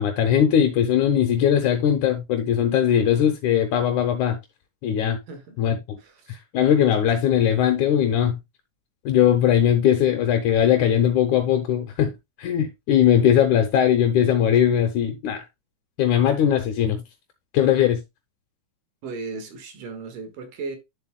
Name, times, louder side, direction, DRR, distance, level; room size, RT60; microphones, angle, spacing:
voice 1, 0.0-4.4 4.8-5.2 5.6-6.0 6.3-8.4 9.1-12.1 12.4-15.4 16.0-17.0 17.5-18.0, left 9 dB, 75° left, 2.2 m, -20 dB
voice 2, 5.3-5.6 6.0-6.4 19.0-20.8, right 4 dB, 85° right, 3.3 m, -36 dB
9.9 x 7.3 x 2.2 m
omnidirectional pair, 3.7 m